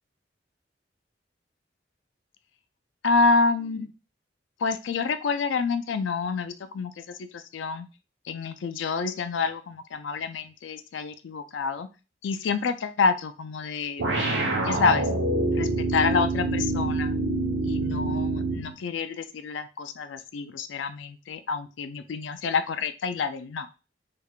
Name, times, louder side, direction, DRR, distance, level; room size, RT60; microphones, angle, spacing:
voice 1, 3.0-3.9 4.6-7.9 8.3-11.9 12.2-14.0 14.6-15.1 15.5-17.2 17.7-23.7, left 4 dB, 90° left, 10 dB, 0.4 m, -28 dB
sound 1, 14.0-18.7, right 2 dB, 85° right, 0.9 m, -26 dB
3.4 x 3.3 x 2.3 m, 0.31 s
head